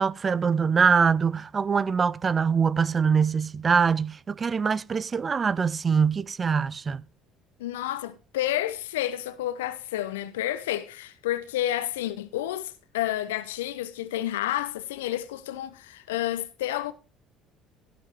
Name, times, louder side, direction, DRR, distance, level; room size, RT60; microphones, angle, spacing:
voice 1, 0.0-7.0, right 6 dB, 35° right, 0.5 m, -23 dB
voice 2, 7.6-16.9, left 13 dB, 75° left, 0.8 m, -30 dB
17.5 x 5.8 x 4.4 m
figure-of-eight pair, 55°, 0 cm